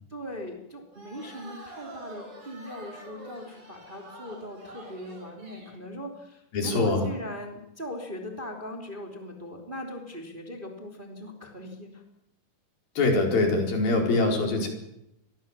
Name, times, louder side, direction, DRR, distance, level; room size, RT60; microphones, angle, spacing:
voice 1, 0.1-12.0, left 1 dB, 15° right, 2 dB, 2.7 m, -39 dB
sound 1, 0.9-5.8, right 2 dB, 45° right, 7.5 m, -47 dB
voice 2, 6.5-7.0 13.0-14.7, left 2 dB, 65° left, 2 dB, 6.3 m, -23 dB
27.5 x 21.5 x 7.4 m, 0.83 s
omnidirectional pair, 4.4 m